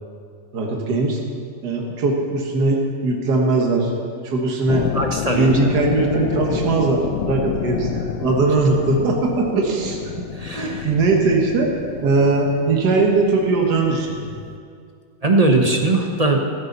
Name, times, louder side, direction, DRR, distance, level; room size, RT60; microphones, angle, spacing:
voice 1, 0.5-1.2 1.6-3.9 4.2-4.9 5.3-10.3 10.5-11.7 12.0-14.2, right 3 dB, 60° right, 0 dB, 2.1 m, -20 dB
sound 1, 4.7-14.6, left 10 dB, 75° left, 1.1 m, -30 dB
voice 2, 4.9-5.6 10.3-10.9 15.2-16.4, right 2 dB, 30° right, 2 dB, 0.7 m, -19 dB
15.5 x 13.5 x 4.1 m, 2.2 s
omnidirectional pair, 2.1 m